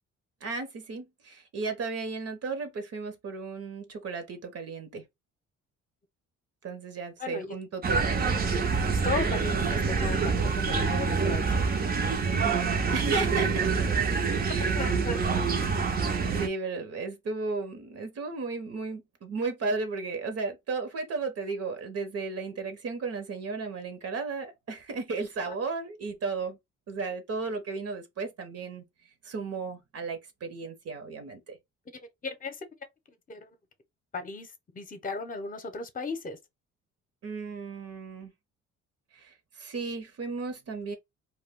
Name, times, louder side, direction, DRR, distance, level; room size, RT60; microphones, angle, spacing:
voice 1, 0.4-5.0 6.6-8.1 12.4-13.7 14.5-14.8 15.8-16.0 16.4-26.6 26.9-28.8 29.2-31.6 37.2-38.3 39.1-41.0, right 4 dB, 55° right, 0.9 m, -34 dB
voice 2, 7.2-7.6 9.0-11.7 14.7-15.2 25.5-25.6 32.2-32.6 33.3-33.5 34.1-34.5 34.7-36.4, left 3 dB, 25° left, 0.8 m, -35 dB
sound 1, 7.8-16.5, right 5 dB, 30° right, 0.6 m, -26 dB
2.3 x 2.2 x 3.5 m
cardioid pair, 90°, 30 cm